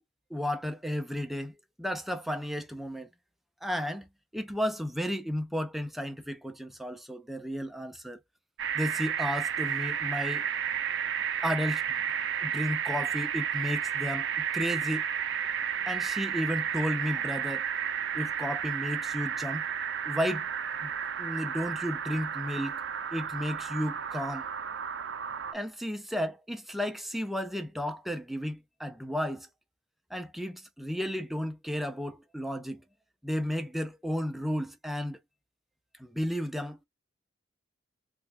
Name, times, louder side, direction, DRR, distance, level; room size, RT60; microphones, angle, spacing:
voice 1, 0.3-3.1 3.6-8.2 8.7-10.4 11.4-11.8 12.4-15.0 15.9-17.6 18.1-19.7 20.0-20.5 20.8-20.9 21.2-22.8 23.1-24.5 25.5-29.5 30.1-32.8 33.2-35.2 36.0-36.8, equal, ahead, 0.4 m, -33 dB
sound 1, 8.6-25.5, right 8 dB, 65° right, 0.5 m, -32 dB
3.3 x 2.4 x 3.1 m
head